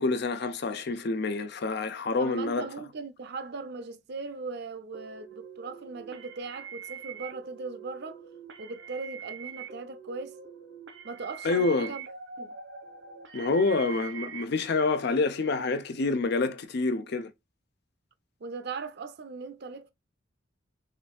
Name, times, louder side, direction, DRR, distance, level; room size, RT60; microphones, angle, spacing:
voice 1, 0.0-2.7 11.4-11.9 13.3-17.3, left 3 dB, 60° left, 0.5 m, -27 dB
voice 2, 2.2-8.2 8.6-10.4 11.0-12.1 12.4-12.6 18.4-19.9, right 4 dB, 60° right, 0.6 m, -39 dB
sound 1, 4.9-14.4, right 7 dB, 80° right, 1.1 m, -44 dB
3.8 x 3.4 x 2.2 m
head